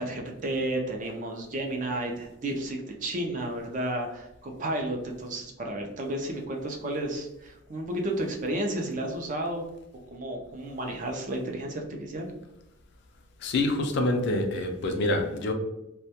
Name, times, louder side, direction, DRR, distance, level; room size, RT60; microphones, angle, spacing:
voice 1, 0.0-9.7 10.1-12.3, right 1 dB, 40° right, 2 dB, 0.4 m, -32 dB
voice 2, 13.4-15.5, left 2 dB, 60° left, 4 dB, 0.4 m, -26 dB
2.1 x 2.1 x 2.8 m, 0.89 s
head